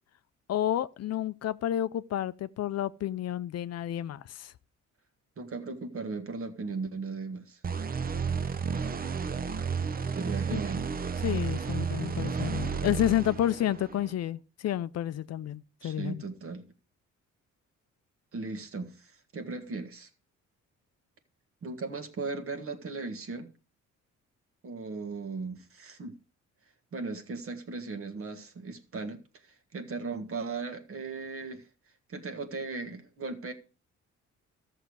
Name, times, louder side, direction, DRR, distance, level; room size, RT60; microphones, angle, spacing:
voice 1, 0.5-4.5 10.5-10.6 11.2-16.2, left 12 dB, 55° left, 0.5 m, -30 dB
voice 2, 5.4-7.6 10.1-10.8 15.8-16.7 18.3-20.1 21.6-23.5 24.6-26.2 26.9-31.7 32.1-33.5, right 4 dB, 45° right, 1.6 m, -37 dB
sound 1, 7.6-14.1, right 6 dB, 30° right, 0.7 m, -32 dB
13.5 x 6.7 x 4.7 m
cardioid pair, 90°, 30 cm